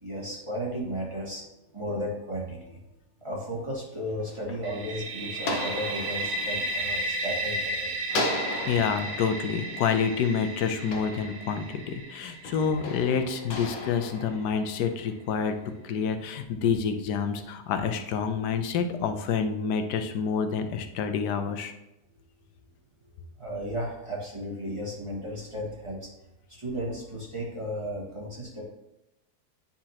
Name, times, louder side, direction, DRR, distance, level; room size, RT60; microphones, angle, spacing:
voice 1, 0.0-1.4 1.7-2.8 3.2-7.9 23.4-26.1 26.5-28.6, equal, 20° right, -5 dB, 1.6 m, -34 dB
sound 1, 3.9-7.6 8.1-11.8 12.4-15.1, left 1 dB, 60° left, 1.3 m, -37 dB
sound 2, 4.6-14.3, right 1 dB, 65° right, 1.5 m, -34 dB
voice 2, 8.7-15.5 15.8-21.7, left 6 dB, 90° left, 8 dB, 1.3 m, -28 dB
9.6 x 4.3 x 2.9 m, 0.92 s
omnidirectional pair, 1.7 m